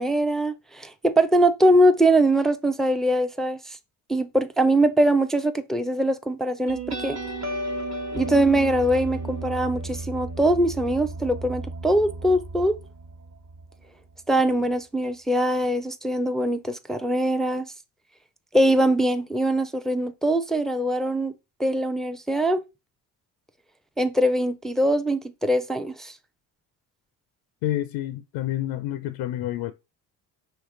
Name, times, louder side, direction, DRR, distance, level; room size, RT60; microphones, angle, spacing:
voice 1, 0.0-3.8 4.1-7.2 8.1-12.8 14.3-17.7 18.5-21.3 21.6-22.6 24.0-26.1, right 1 dB, ahead, 0.4 m, -22 dB
sound 1, 6.7-13.8, right 2 dB, 35° right, 1.1 m, -34 dB
voice 2, 27.6-29.7, left 13 dB, 70° left, 0.5 m, -28 dB
4.6 x 3.0 x 3.7 m
hypercardioid pair, 45°, 45 cm